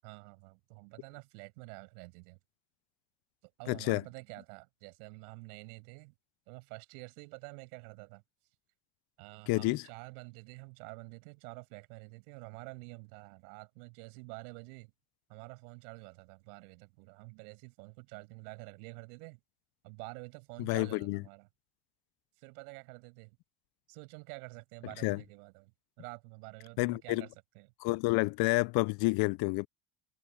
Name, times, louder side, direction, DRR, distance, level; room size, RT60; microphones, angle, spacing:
voice 1, 0.0-2.4 3.4-6.1 6.5-8.2 9.2-14.9 15.3-19.4 19.8-21.5 22.4-23.4 23.9-27.7, right 33 dB, 70° right, 7.4 m, -48 dB
voice 2, 3.7-4.0 9.5-9.9 20.6-21.2 25.0-25.2 26.8-27.3 27.8-29.7, left 25 dB, 55° left, 0.6 m, -29 dB
hypercardioid pair, 80°, 45 cm